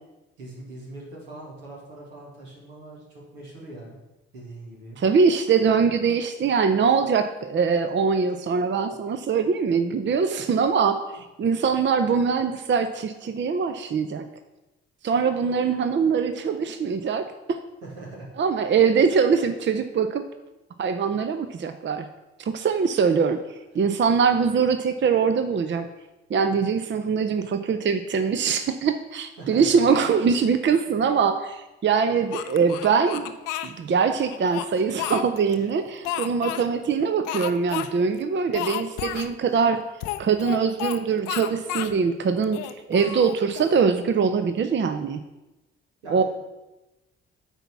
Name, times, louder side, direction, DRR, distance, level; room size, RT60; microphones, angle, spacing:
voice 1, 0.4-4.0 4.3-5.0 17.8-18.3 29.4-29.8 46.0-46.2, right 2 dB, 80° right, -3 dB, 2.1 m, -41 dB
voice 2, 5.0-14.3 15.0-17.6 18.4-20.2 20.8-22.1 22.4-23.4 23.7-25.9 26.3-33.4 33.6-39.8 40.2-45.2 46.1-46.2, right 6 dB, 35° right, 9 dB, 0.6 m, -23 dB
Speech, 32.3-33.7 34.3-35.6 36.0-36.6 37.2-37.9 38.1-38.2 38.5-39.3 40.0-41.0 41.2-41.9 42.4-43.8, left 12 dB, 70° left, 0.6 m, -32 dB
9.0 x 4.2 x 5.9 m, 1.0 s
hypercardioid pair, 40°, 32 cm